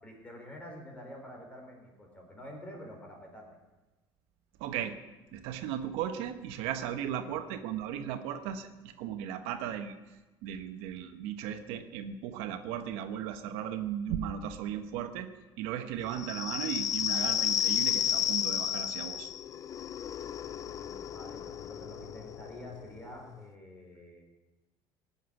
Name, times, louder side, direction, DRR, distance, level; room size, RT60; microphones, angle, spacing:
voice 1, 0.0-3.5 20.5-24.2, equal, 15° left, 1 dB, 4.3 m, -48 dB
voice 2, 4.6-5.0 5.3-9.9 10.4-15.3 15.6-19.3, right 9 dB, 85° right, 8 dB, 1.2 m, -36 dB
sound 1, 16.1-23.4, left 10 dB, 35° left, 0.5 m, -32 dB
17.5 x 7.2 x 9.6 m, 1.1 s
cardioid pair, 150°, 10 cm